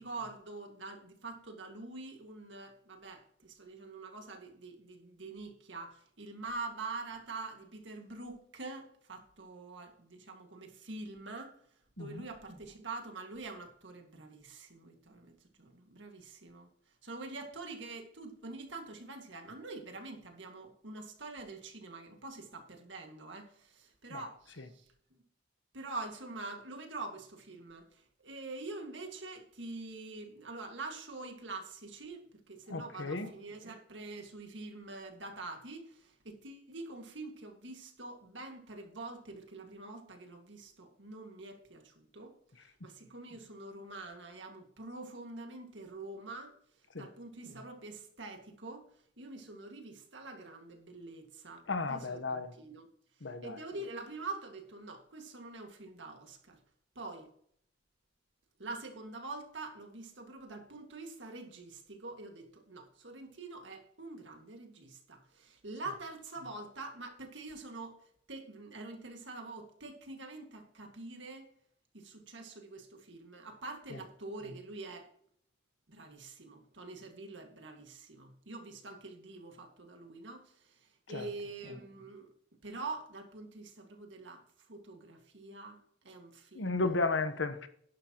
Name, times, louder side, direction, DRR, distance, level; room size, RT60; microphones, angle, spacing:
voice 1, 0.0-11.6 12.0-16.7 17.0-25.2 25.7-46.5 47.0-48.9 49.2-52.9 53.2-56.6 57.0-57.3 58.6-68.0 68.3-71.5 71.9-75.1 75.9-82.3 82.6-86.9, right 3 dB, 70° right, 2.1 m, -45 dB
voice 2, 24.1-24.7 32.7-33.3 46.9-47.1 51.7-52.5 53.2-53.6 73.9-74.0 81.1-81.3 86.5-87.7, left 3 dB, 75° left, 1.2 m, -34 dB
11.5 x 11.0 x 3.0 m
head